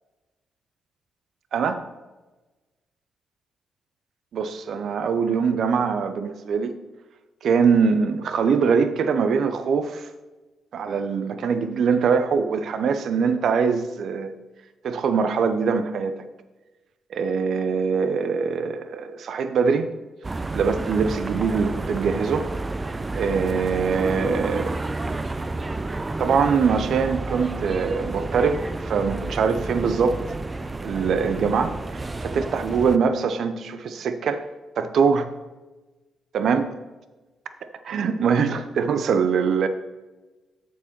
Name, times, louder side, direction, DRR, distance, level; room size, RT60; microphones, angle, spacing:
voice 1, 1.5-1.8 4.3-6.7 7.4-10.1 10.7-14.3 14.8-16.2 17.1-19.9 20.5-22.5 23.1-24.7 26.2-30.2 30.8-34.4 34.8-35.3 36.3-36.7 37.8-39.7, right 5 dB, 70° right, 10 dB, 0.6 m, -23 dB
sound 1, 20.2-33.0, right 2 dB, 25° right, 0.5 m, -30 dB
7.0 x 4.7 x 5.9 m, 1.2 s
supercardioid pair, 65°, 0 cm